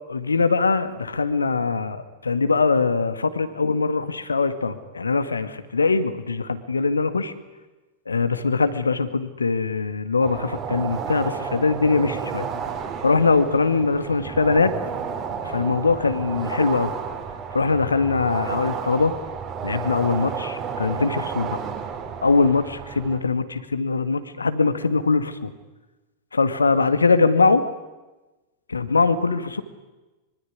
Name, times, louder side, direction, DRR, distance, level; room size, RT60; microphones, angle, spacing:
voice 1, 0.1-7.3 8.1-12.5 13.0-14.7 15.5-16.9 17.5-19.1 19.6-21.6 22.2-25.5 26.3-27.6 28.7-29.6, left 4 dB, 75° left, 11 dB, 2.0 m, -22 dB
sound 1, 10.2-23.2, right 6 dB, 35° right, 5.2 m, -32 dB
25.0 x 24.0 x 9.7 m, 1.1 s
figure-of-eight pair, 90°, 0 cm